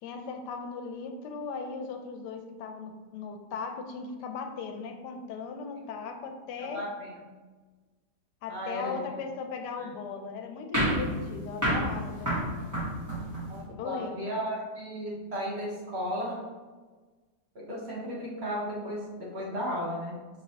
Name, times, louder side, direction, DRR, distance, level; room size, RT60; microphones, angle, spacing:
voice 1, 0.0-6.8 8.4-12.6 13.8-14.2, left 5 dB, 90° left, 5 dB, 1.2 m, -38 dB
voice 2, 6.6-7.2 8.5-9.0 9.8-9.9 13.5-16.5 17.5-20.2, equal, 45° right, -5 dB, 1.0 m, -35 dB
sound 1, 10.7-13.6, equal, 15° right, 1.0 m, -29 dB
5.3 x 3.1 x 2.8 m, 1.4 s
omnidirectional pair, 1.8 m